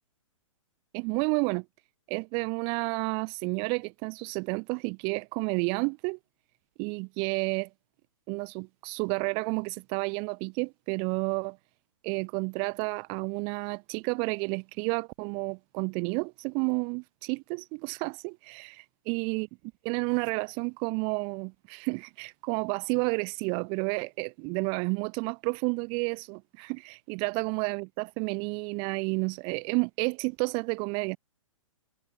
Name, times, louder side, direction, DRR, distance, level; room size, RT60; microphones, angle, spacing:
voice 1, 0.9-1.6 2.1-6.2 6.8-7.7 8.3-11.6 12.0-19.5 19.8-31.2, right 35 dB, 30° right, 2.2 m, -31 dB
figure-of-eight pair, 115°, 17 cm